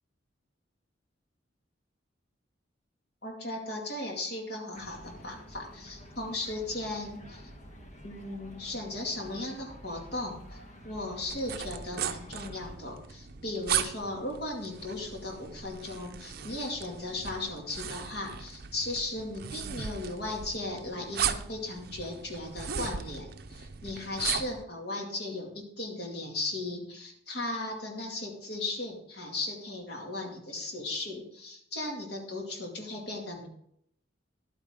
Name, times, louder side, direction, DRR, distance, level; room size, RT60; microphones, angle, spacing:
voice 1, 3.2-7.5 8.0-10.6 10.8-33.5, left 2 dB, 60° left, 1 dB, 2.3 m, -36 dB
sound 1, 4.7-12.8, equal, 40° left, 1.4 m, -49 dB
sound 2, 11.3-24.6, right 8 dB, 55° right, 0.6 m, -37 dB
11.0 x 8.8 x 3.7 m, 0.71 s
head